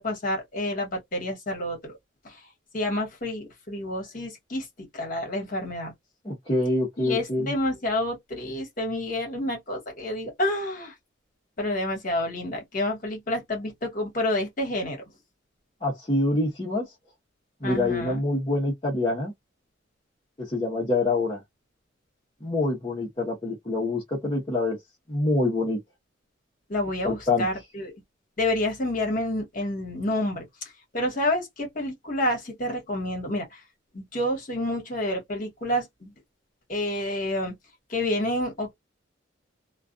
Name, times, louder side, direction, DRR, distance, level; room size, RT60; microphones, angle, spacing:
voice 1, 0.0-2.0 2.2-2.4 2.7-5.9 7.0-10.9 11.6-15.0 17.6-18.2 26.7-27.9 28.4-30.4 30.9-33.6 33.9-36.1 36.7-37.5 37.9-38.7, left 1 dB, 45° left, 1.2 m, -29 dB
voice 2, 6.2-7.5 15.8-16.8 17.6-19.3 20.4-21.4 22.4-24.8 25.1-25.8 27.0-27.5, left 2 dB, 25° left, 0.8 m, -26 dB
2.3 x 2.3 x 2.4 m
head